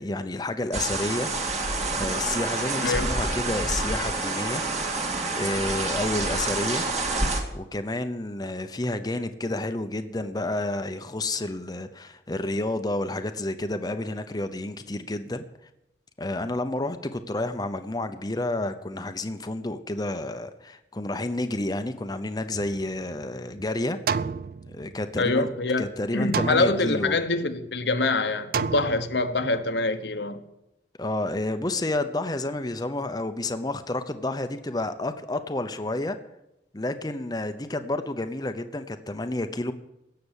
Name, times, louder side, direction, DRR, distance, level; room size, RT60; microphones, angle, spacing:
voice 1, 0.0-1.3 1.9-4.6 5.4-6.9 7.5-15.5 16.2-24.0 24.7-25.5 25.8-27.2 31.0-36.2 36.7-39.7, left 2 dB, 20° left, 8 dB, 0.7 m, -30 dB
sound 1, 0.7-7.4, right 2 dB, 40° right, 2.1 m, -28 dB
sound 2, 22.5-23.4 24.1-25.3 26.3-27.3 28.5-29.5, right 5 dB, 55° right, 0.4 m, -31 dB
voice 2, 25.2-25.9 26.1-30.4, left 2 dB, 75° left, 9 dB, 1.1 m, -25 dB
17.0 x 6.8 x 8.2 m, 0.89 s
head